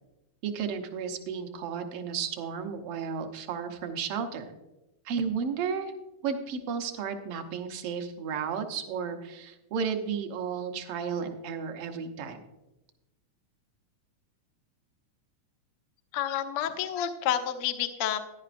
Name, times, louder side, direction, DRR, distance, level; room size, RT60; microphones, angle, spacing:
voice 1, 0.4-4.6 5.0-5.9 6.2-12.4, right 6 dB, 70° right, 6 dB, 1.4 m, -33 dB
voice 2, 16.1-18.2, left 10 dB, 85° left, 7 dB, 1.2 m, -29 dB
14.0 x 11.0 x 2.5 m, 0.98 s
omnidirectional pair, 3.6 m